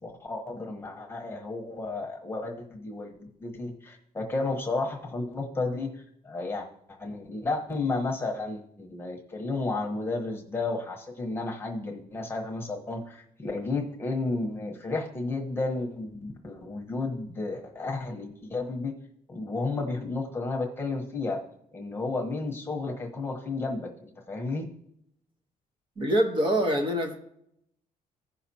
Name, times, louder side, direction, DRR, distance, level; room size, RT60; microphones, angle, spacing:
voice 1, 0.0-6.7 7.0-18.9 19.3-21.4 21.7-24.7, left 3 dB, 15° left, 1.1 m, -32 dB
voice 2, 26.0-27.2, equal, 35° right, 1.2 m, -25 dB
15.5 x 5.8 x 2.8 m
cardioid pair, 165°, 15 cm